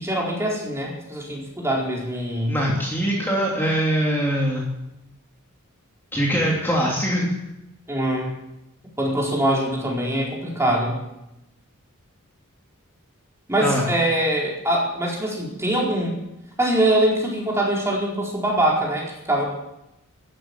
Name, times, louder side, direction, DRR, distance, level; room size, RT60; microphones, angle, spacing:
voice 1, 0.0-2.6 7.9-8.3 9.0-11.0 13.5-16.2 16.6-19.4, right 1 dB, 15° right, -2 dB, 4.4 m, -23 dB
voice 2, 2.5-4.7 6.1-7.3 13.6-13.8, equal, 10° left, -4 dB, 3.0 m, -22 dB
14.0 x 12.0 x 8.4 m, 0.88 s
head